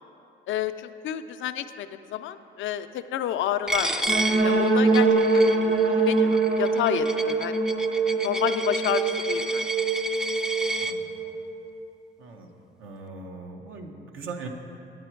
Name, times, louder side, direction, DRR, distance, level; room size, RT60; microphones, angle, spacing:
voice 1, 0.5-5.4 5.9-7.5 8.2-9.7, left 10 dB, 75° left, 10 dB, 0.5 m, -30 dB
Coin (dropping), 3.7-10.9, right 1 dB, 5° right, 0.3 m, -31 dB
sound 1, 4.1-11.8, right 3 dB, 35° right, 0.7 m, -24 dB
voice 2, 10.8-11.1 12.2-12.5 12.8-14.5, right 4 dB, 85° right, 2 dB, 0.8 m, -40 dB
9.3 x 9.0 x 4.5 m, 2.7 s
cardioid pair, 90°, 20 cm